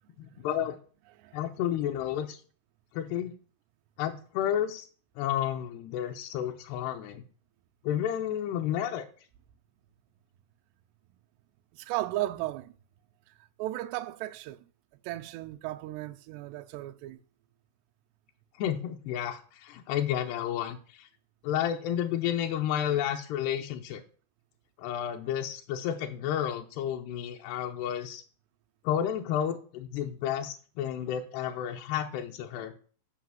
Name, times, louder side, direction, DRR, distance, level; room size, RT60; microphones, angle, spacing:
voice 1, 0.2-0.8 1.3-2.4 2.9-3.3 4.0-4.9 5.2-7.2 7.8-9.1 18.6-21.1 21.4-24.0 24.8-28.2 28.8-32.7, left 10 dB, 85° left, 2.9 m, -31 dB
voice 2, 11.7-12.7 13.6-14.7 15.0-17.2, right 16 dB, 90° right, 2.7 m, -35 dB
8.8 x 5.1 x 7.7 m
omnidirectional pair, 4.6 m